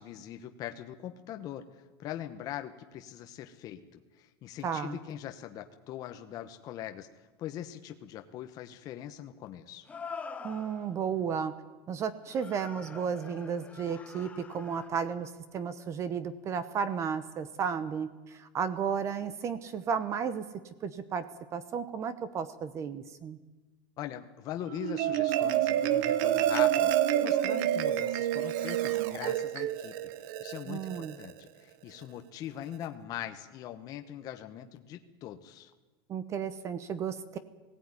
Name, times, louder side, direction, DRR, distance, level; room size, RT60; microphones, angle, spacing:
voice 1, 0.0-7.1 7.4-9.9 24.0-29.9 30.4-35.7, left 11 dB, 30° left, 6 dB, 1.0 m, -41 dB
voice 2, 4.6-5.0 10.4-11.5 11.9-20.4 20.8-21.3 21.5-23.4 30.7-31.2 36.1-37.4, right 7 dB, 25° right, 14 dB, 0.9 m, -33 dB
sound 1, 6.7-6.8 9.8-11.1 12.3-14.9, left 5 dB, 10° left, 0.9 m, -45 dB
Marimba xylophone, 24.7-31.3, right 12 dB, 55° right, 1.0 m, -28 dB
19.5 x 16.5 x 9.7 m, 1.2 s
supercardioid pair, 170°, 12 cm